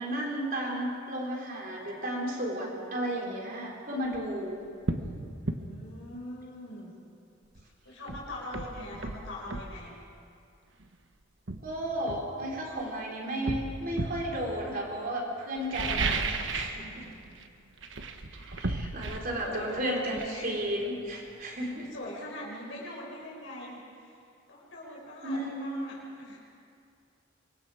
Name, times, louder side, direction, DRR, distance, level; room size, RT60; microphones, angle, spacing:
voice 1, 0.0-4.6 11.6-17.1 18.3-21.9 25.2-25.8, right 1 dB, 45° right, -1 dB, 3.8 m, -33 dB
sound 1, 4.0-4.2 4.8-5.1 5.5-5.6 7.5-7.6 8.1-9.7 10.8-10.9 11.5-12.9 13.5-14.3 15.6-16.8 17.1-17.5 17.8-21.3 21.6-21.7, right 3 dB, 70° right, 1.3 m, -34 dB
voice 2, 5.3-6.9 7.8-9.9 19.4-20.7 21.6-24.2 24.5-26.4, left 1 dB, 75° left, -4 dB, 5.1 m, -42 dB
25.5 x 22.0 x 4.9 m, 2.5 s
head